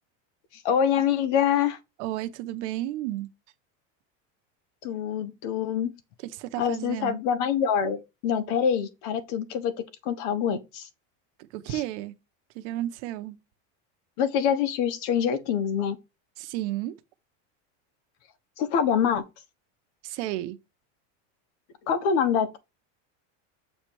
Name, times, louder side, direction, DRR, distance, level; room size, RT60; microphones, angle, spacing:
voice 1, 0.5-1.8 4.8-5.9 6.6-10.9 11.7-11.8 14.2-16.0 18.6-19.2 21.9-22.6, left 8 dB, 75° left, 1.3 m, -25 dB
voice 2, 2.0-3.3 6.2-7.2 11.5-12.1 12.5-13.4 16.4-17.0 20.0-20.6, right 14 dB, 70° right, 0.9 m, -32 dB
7.2 x 3.3 x 4.6 m
cardioid pair, 160°, 36 cm